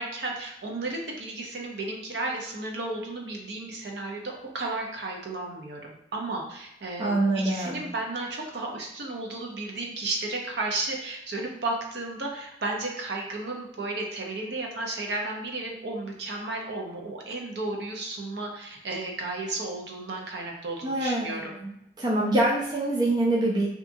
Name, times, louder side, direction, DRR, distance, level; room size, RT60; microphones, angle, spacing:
voice 1, 0.0-21.6, right 2 dB, 70° right, 0 dB, 0.6 m, -33 dB
voice 2, 7.0-7.8 20.8-21.7 22.0-23.7, right 2 dB, 25° right, -4 dB, 0.3 m, -25 dB
2.7 x 2.3 x 2.6 m, 0.79 s
head